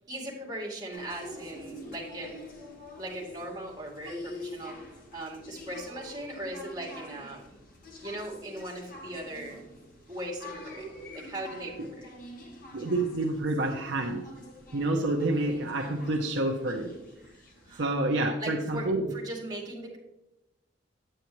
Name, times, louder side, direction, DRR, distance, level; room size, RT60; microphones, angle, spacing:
voice 1, 0.1-2.4 3.0-4.8 5.1-7.4 8.0-9.7 10.1-10.9 11.1-12.1 17.6-17.9 18.4-20.0, right 1 dB, 20° right, -3 dB, 2.2 m, -39 dB
sound 1, 0.9-17.8, left 1 dB, 45° left, 1.3 m, -46 dB
voice 2, 12.7-14.2 14.7-16.9 17.8-19.2, right 2 dB, 65° right, 2 dB, 0.8 m, -28 dB
9.0 x 8.1 x 3.0 m, 0.94 s
head